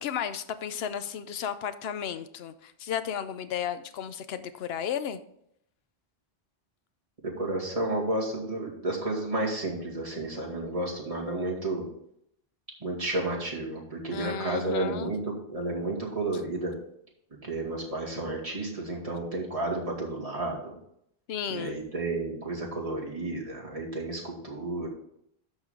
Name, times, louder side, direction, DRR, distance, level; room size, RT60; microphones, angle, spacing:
voice 1, 0.0-5.2 14.1-15.1 21.3-21.8, left 8 dB, 75° left, 11 dB, 0.9 m, -34 dB
voice 2, 7.4-11.9 12.8-15.2 15.5-16.7 17.4-20.7 21.5-24.9, right 2 dB, 35° right, -3 dB, 2.3 m, -31 dB
13.0 x 4.8 x 3.7 m, 0.74 s
omnidirectional pair, 1.1 m